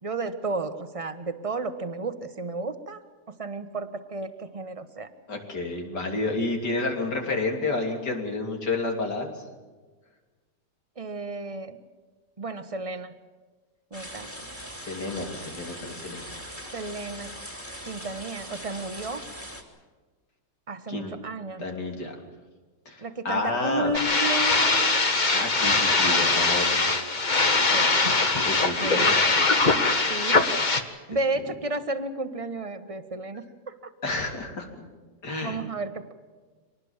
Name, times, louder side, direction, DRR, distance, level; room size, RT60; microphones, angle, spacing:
voice 1, 0.0-3.0 3.4-5.1 11.0-11.8 12.4-13.1 13.9-14.3 16.7-17.3 17.9-19.2 20.7-21.6 23.0-25.0 26.3-27.1 27.7-27.9 28.8-29.1 30.1-30.4 31.1-33.7 35.4-36.1, right 2 dB, 20° right, 9 dB, 1.2 m, -33 dB
voice 2, 5.3-9.3 14.8-16.5 20.9-21.1 21.6-22.2 22.9-23.9 25.3-26.9 28.5-29.6 34.0-34.7 35.2-35.6, left 2 dB, 70° left, 2 dB, 3.8 m, -30 dB
sound 1, 13.9-19.6, equal, 5° left, 2.9 m, -41 dB
sound 2, 23.9-30.8, left 3 dB, 30° left, 1.4 m, -22 dB
24.5 x 19.5 x 7.3 m, 1.4 s
omnidirectional pair, 1.9 m